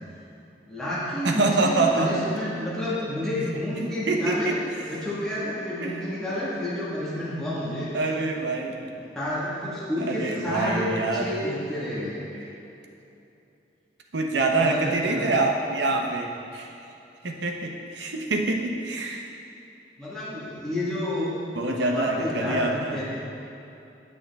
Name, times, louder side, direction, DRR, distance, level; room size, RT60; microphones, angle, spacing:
voice 1, 0.7-4.5 4.9-7.9 8.8-12.2 14.6-15.3 20.0-21.3 21.7-22.7 22.9-23.0, left 1 dB, 5° left, -10 dB, 1.4 m, -30 dB
voice 2, 1.2-2.1 4.1-4.6 5.8-6.1 7.9-8.7 10.0-11.3 14.1-16.7 17.2-19.3 21.5-23.0, right 3 dB, 80° right, 2 dB, 0.8 m, -26 dB
9.7 x 6.2 x 3.5 m, 2.8 s
head